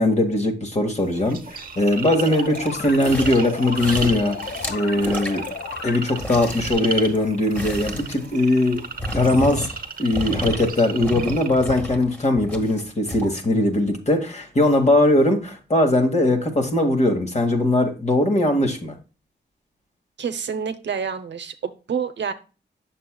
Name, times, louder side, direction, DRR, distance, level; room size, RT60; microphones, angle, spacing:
voice 1, 0.0-4.4 4.7-5.5 5.8-8.8 9.1-9.7 10.0-18.9, left 1 dB, 35° left, 3 dB, 1.9 m, -20 dB
sound 1, 1.0-11.5, right 5 dB, 50° right, 0.9 m, -34 dB
sound 2, 2.0-6.4, left 6 dB, 70° left, 0.8 m, -34 dB
sound 3, 2.5-3.5 3.7-5.9 6.1-9.9 10.1-10.7 11.0-13.4 13.9-14.0, equal, 10° left, 1.8 m, -32 dB
voice 2, 20.2-22.3, right 6 dB, 75° right, 10 dB, 0.7 m, -28 dB
7.6 x 6.7 x 2.2 m, 0.33 s
cardioid pair, 75°, 19 cm